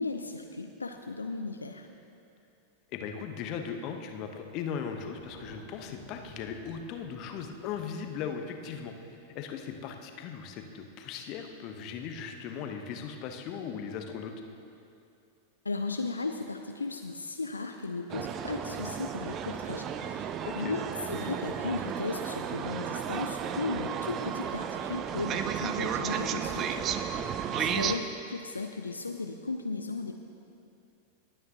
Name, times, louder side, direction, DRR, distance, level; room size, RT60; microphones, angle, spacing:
voice 1, 0.0-1.9 15.6-30.2, left 3 dB, 80° left, 5 dB, 0.5 m, -36 dB
voice 2, 2.9-8.9 9.3-14.3 20.4-20.7 27.2-27.8, left 7 dB, 40° left, 5 dB, 1.0 m, -38 dB
Thunder, 4.4-9.8, right 1 dB, 45° right, 2.2 m, -55 dB
sound 1, 18.1-28.0, right 8 dB, 30° right, 0.5 m, -33 dB
20.0 x 9.0 x 2.9 m, 2.6 s
figure-of-eight pair, 90°, 0 cm